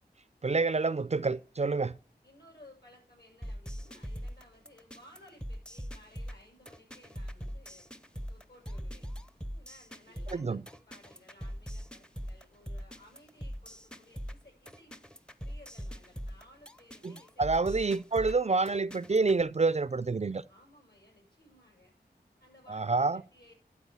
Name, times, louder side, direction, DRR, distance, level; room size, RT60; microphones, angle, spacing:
voice 1, 0.4-1.9 10.3-10.6 17.0-20.4 22.7-23.2, right 3 dB, 40° right, 0.4 m, -28 dB
voice 2, 2.2-7.9 8.3-9.1 9.5-14.9 15.4-18.0 20.5-21.9 22.4-23.5, left 1 dB, 70° left, 7.2 m, -59 dB
sound 1, 3.4-19.4, equal, 5° left, 0.6 m, -42 dB
12.0 x 4.9 x 6.9 m
wide cardioid pair, 65°, 18 cm